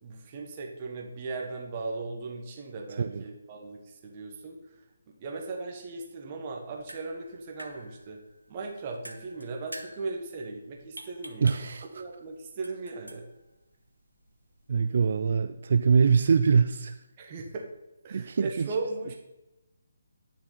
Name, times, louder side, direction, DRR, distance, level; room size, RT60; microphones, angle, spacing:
voice 1, 0.0-4.8 5.1-8.2 8.5-11.6 11.9-13.3 17.2-17.6 18.0-19.1, right 3 dB, 30° right, 1 dB, 1.3 m, -37 dB
sound 1, 6.6-15.2, right 1 dB, 90° right, 1.1 m, -49 dB
voice 2, 11.4-12.0 14.7-16.9 18.1-18.7, right 5 dB, 50° right, 10 dB, 0.3 m, -24 dB
9.8 x 6.5 x 4.0 m, 0.98 s
figure-of-eight pair, 145°, 0 cm